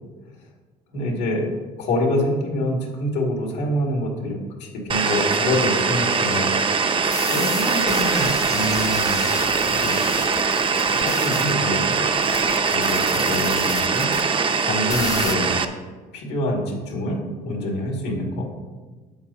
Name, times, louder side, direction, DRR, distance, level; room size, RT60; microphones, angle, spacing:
voice 1, 0.9-1.5 1.8-6.5 7.3-9.2 9.8-10.0 10.8-12.1 12.7-15.6 16.1-18.5, left 1 dB, 90° left, 0 dB, 2.3 m, -26 dB
sound 1, 4.9-15.6, right 5 dB, 30° right, 0.6 m, -22 dB
sound 2, 7.0-14.2 14.9-15.4, left 5 dB, 20° left, 0.4 m, -33 dB
10.5 x 7.5 x 2.9 m, 1.3 s
cardioid pair, 110°, 17 cm